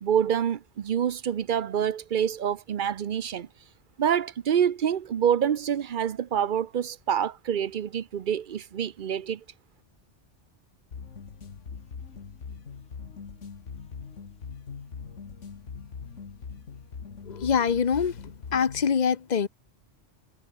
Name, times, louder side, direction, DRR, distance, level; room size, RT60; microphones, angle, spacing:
voice 1, 0.0-3.5 4.0-9.4, right 8 dB, 50° right, 0.7 m, -26 dB
sound 1, 10.9-18.9, left 6 dB, 85° left, 2.0 m, -42 dB
voice 2, 17.3-18.1 18.5-19.5, left 6 dB, 40° left, 1.0 m, -24 dB
omnidirectional pair, 1.2 m